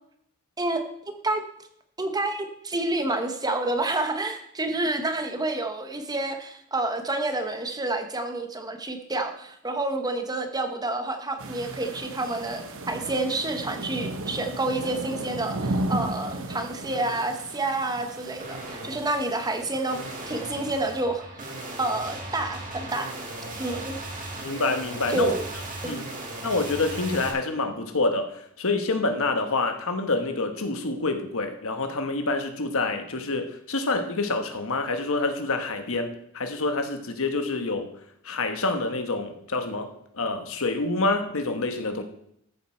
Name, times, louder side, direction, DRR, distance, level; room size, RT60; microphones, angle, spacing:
voice 1, 0.6-1.4 2.0-20.0 20.3-21.5 21.8-23.1 23.6-24.0 25.1-25.4 25.8-26.0, right 2 dB, 20° right, 6 dB, 1.0 m, -29 dB
sound 1, 11.4-21.0, right 2 dB, 65° right, 1.1 m, -35 dB
sound 2, 13.6-13.7 14.2-14.9 15.4-15.8 16.9-17.5 18.4-27.3, right 2 dB, 35° right, 2.1 m, -38 dB
voice 2, 24.4-25.3 25.8-26.0 26.4-37.9 38.2-42.0, left 3 dB, 65° left, 6 dB, 1.3 m, -27 dB
13.5 x 7.4 x 4.4 m, 0.73 s
head